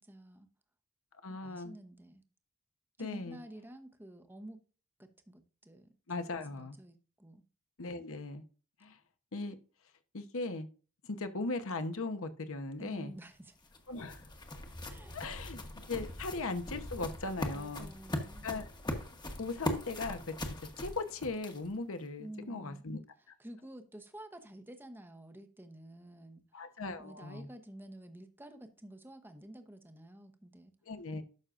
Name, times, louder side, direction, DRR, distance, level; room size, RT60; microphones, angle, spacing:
voice 1, 0.1-0.5 1.3-2.2 3.0-4.6 5.0-5.9 6.5-7.4 12.8-13.6 14.9-15.2 17.5-18.5 22.2-22.8 23.4-30.7, right 1 dB, 10° right, 0.9 m, -50 dB
voice 2, 1.2-1.8 3.0-3.4 6.1-6.8 7.8-8.4 8.8-9.0 9.3-9.5 10.1-10.7 11.0-13.1 13.9-14.2 15.1-15.6 15.9-17.9 18.4-18.7 19.4-20.3 20.8-23.0 26.5-27.5 30.9-31.2, left 3 dB, 65° left, 1.0 m, -38 dB
sound 1, 13.3-21.8, left 1 dB, 20° left, 1.1 m, -41 dB
12.0 x 6.3 x 2.5 m
head